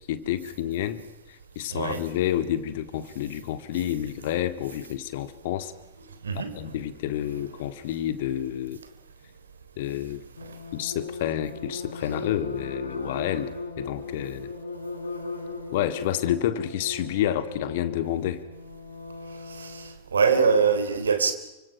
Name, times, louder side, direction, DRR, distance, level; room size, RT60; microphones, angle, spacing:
voice 1, 0.1-5.7 6.5-8.8 9.8-10.2 10.7-14.5 15.7-18.4, left 12 dB, 55° left, 12 dB, 2.0 m, -29 dB
voice 2, 1.7-2.0 6.2-6.5 10.4-10.6 19.5-21.3, right 5 dB, 70° right, 9 dB, 3.4 m, -24 dB
sound 1, 10.4-20.0, left 3 dB, 75° left, 4.6 m, -37 dB
29.5 x 25.0 x 6.0 m, 0.99 s
figure-of-eight pair, 90°, 0 cm